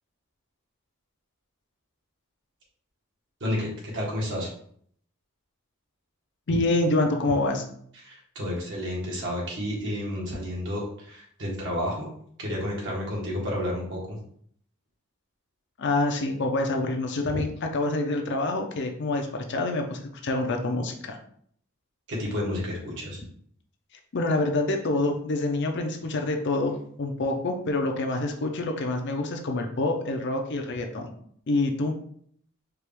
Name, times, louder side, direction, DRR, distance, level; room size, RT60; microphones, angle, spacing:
voice 1, 3.9-4.5 8.0-12.1 12.4-14.0 22.1-23.2, left 1 dB, 60° right, -3 dB, 1.4 m, -30 dB
voice 2, 6.5-7.6 15.8-21.2 24.1-31.1 31.5-31.9, left 2 dB, 55° left, 3 dB, 0.6 m, -27 dB
4.5 x 2.5 x 3.4 m, 0.63 s
head